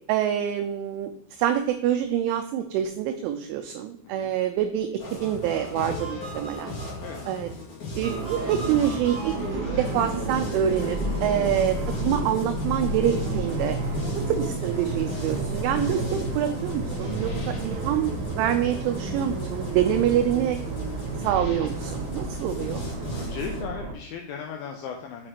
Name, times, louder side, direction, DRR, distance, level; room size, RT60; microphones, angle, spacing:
voice 1, 0.1-6.8 7.3-7.5 8.0-13.8 14.3-20.6 21.2-22.8, right 10 dB, 90° right, 5 dB, 2.7 m, -26 dB
sound 1, 5.0-23.6, left 2 dB, 55° left, 2.2 m, -36 dB
voice 2, 7.0-7.3 14.2-14.3 21.8-21.9 23.1-25.3, left 6 dB, 85° left, 3 dB, 2.6 m, -37 dB
sound 2, 8.0-23.9, right 3 dB, 70° right, 2.6 m, -31 dB
6.7 x 6.3 x 2.9 m, 0.73 s
omnidirectional pair, 6.0 m